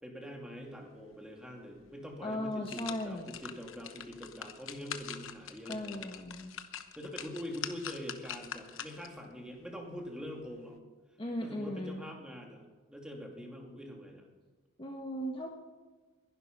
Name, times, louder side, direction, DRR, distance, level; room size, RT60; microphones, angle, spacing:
voice 1, 0.0-6.2 7.0-10.8 11.4-12.6 12.9-14.3, equal, 5° right, 1 dB, 2.6 m, -44 dB
sound 1, 1.8-1.9 2.3-9.2 9.6-9.7, left 8 dB, 65° left, 1.1 m, -44 dB
voice 2, 2.2-3.3 5.7-6.6 11.2-12.0 14.8-15.5, left 1 dB, 25° left, 2 dB, 1.3 m, -37 dB
21.0 x 11.5 x 5.4 m, 1.3 s
head